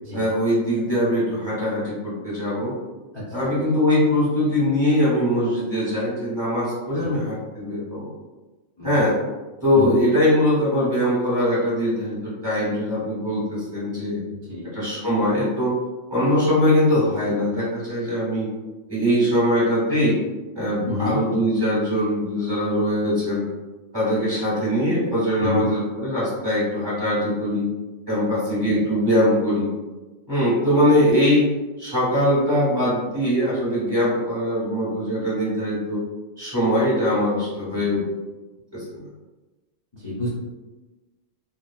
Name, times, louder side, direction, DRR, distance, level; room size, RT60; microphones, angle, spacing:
voice 1, 0.1-2.7 3.3-8.1 8.8-9.2 9.6-14.2 14.6-15.7 16.1-18.5 18.9-20.2 20.5-23.4 23.9-27.6 28.1-29.7 30.3-31.5 31.8-36.0 36.4-38.0 38.7-39.1, left 1 dB, 20° right, -10 dB, 1.2 m, -22 dB
voice 2, 3.1-3.5 7.0-7.2 8.8-9.0 9.7-9.9 14.3-14.7 20.8-21.2 25.4-25.7 28.7-28.8 37.7-37.9 39.9-40.3, left 3 dB, 30° left, -10 dB, 0.5 m, -29 dB
3.2 x 2.1 x 2.3 m, 1.2 s
omnidirectional pair, 1.3 m